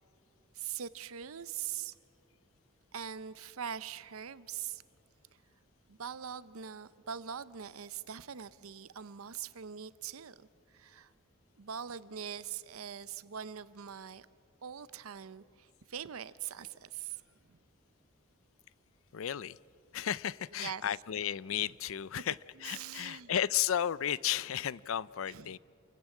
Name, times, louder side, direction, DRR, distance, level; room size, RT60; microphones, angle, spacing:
voice 1, 0.5-2.0 2.9-4.8 5.9-11.1 11.6-14.3 14.6-17.2 17.5-17.6 20.6-20.8 22.6-23.3 25.3-25.6, right 8 dB, 85° right, 0.7 m, -42 dB
voice 2, 19.1-19.6 19.9-25.6, left 10 dB, 70° left, 0.4 m, -33 dB
28.5 x 15.5 x 8.4 m
head